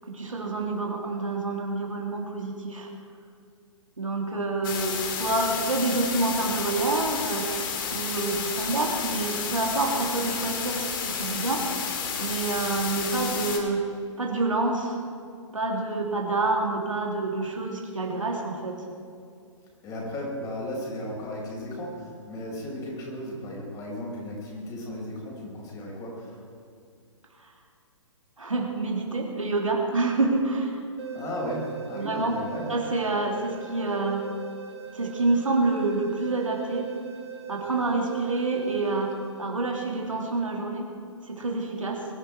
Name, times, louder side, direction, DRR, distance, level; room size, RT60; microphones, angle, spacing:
voice 1, 0.0-2.9 4.0-7.6 7.9-11.8 12.2-13.8 14.2-15.0 15.5-18.8 27.4-27.5 28.4-30.8 31.9-32.4 32.7-34.2 34.9-36.9 37.5-39.1 39.4-40.9 41.2-42.1, right 3 dB, 80° right, 1 dB, 3.1 m, -27 dB
sound 1, 4.6-13.6, left 6 dB, 40° left, 2.4 m, -31 dB
voice 2, 19.8-26.4 31.1-32.7, left 1 dB, 20° left, -2 dB, 5.0 m, -35 dB
sound 2, 31.0-39.9, right 8 dB, 55° right, 1.8 m, -40 dB
23.0 x 11.5 x 4.8 m, 2.4 s
figure-of-eight pair, 125°, 17 cm